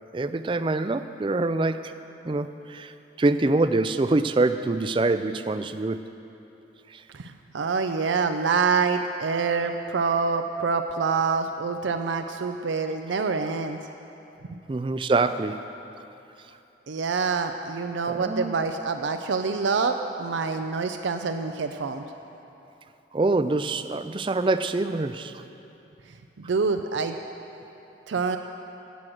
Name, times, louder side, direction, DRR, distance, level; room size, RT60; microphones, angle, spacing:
voice 1, 0.1-2.0 2.2-6.1 6.9-7.0 14.7-15.7 18.1-18.5 23.1-25.4, right 2 dB, 25° right, 11 dB, 0.4 m, -25 dB
voice 2, 7.1-13.8 14.5-14.6 16.9-22.0 26.4-27.2 28.1-28.4, right 4 dB, 80° right, 6 dB, 0.5 m, -26 dB
16.5 x 6.3 x 7.8 m, 2.9 s
head